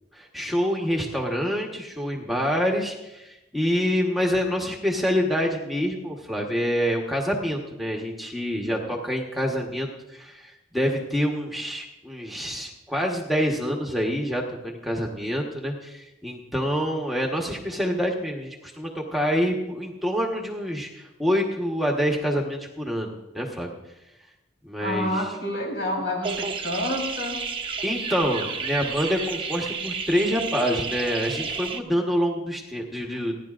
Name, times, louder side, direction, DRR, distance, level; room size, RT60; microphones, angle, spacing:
voice 1, 0.1-23.7 24.7-25.3 27.8-33.4, equal, ahead, 0 dB, 1.2 m, -26 dB
voice 2, 24.8-27.5, left 1 dB, 70° left, 0 dB, 3.9 m, -28 dB
sound 1, 26.2-31.8, right 5 dB, 25° right, 0.8 m, -31 dB
30.0 x 10.5 x 2.5 m, 0.98 s
head